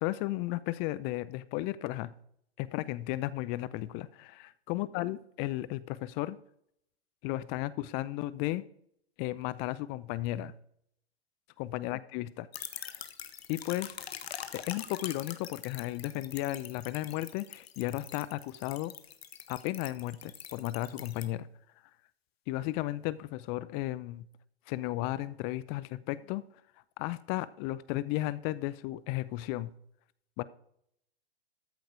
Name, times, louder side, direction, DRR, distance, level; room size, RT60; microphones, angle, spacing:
voice 1, 0.0-2.1 2.6-4.4 4.7-6.4 7.2-8.6 9.2-10.5 11.6-12.5 12.8-13.0 13.5-14.0 14.5-18.9 19.5-21.5 22.5-24.3 24.7-26.4 27.0-29.7 30.4-30.5, left 16 dB, 30° left, 18 dB, 0.6 m, -34 dB
sound 1, 12.5-21.3, left 9 dB, 70° left, 1.3 m, -44 dB
13.5 x 7.9 x 4.8 m, 0.68 s
figure-of-eight pair, 110°, 32 cm